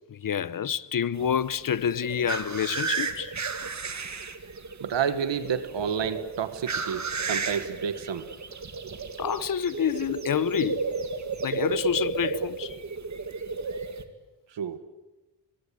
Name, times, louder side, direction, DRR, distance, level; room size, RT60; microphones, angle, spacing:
voice 1, 0.1-3.3 9.2-10.8 11.4-12.8, left 8 dB, 45° left, 0.9 m, -28 dB
sound 1, 1.2-14.0, right 4 dB, 40° right, 2.3 m, -33 dB
voice 2, 4.8-8.3 14.5-14.8, right 7 dB, 70° right, 1.8 m, -30 dB
25.5 x 23.5 x 8.8 m
cardioid pair, 110°, 45 cm